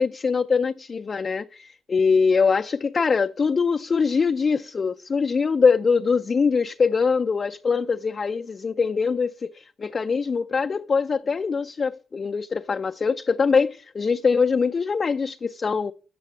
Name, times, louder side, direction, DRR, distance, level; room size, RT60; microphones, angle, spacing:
voice 1, 0.0-15.9, left 5 dB, 40° left, 0.4 m, -23 dB
7.6 x 5.7 x 7.2 m
supercardioid pair, 70°, 0 cm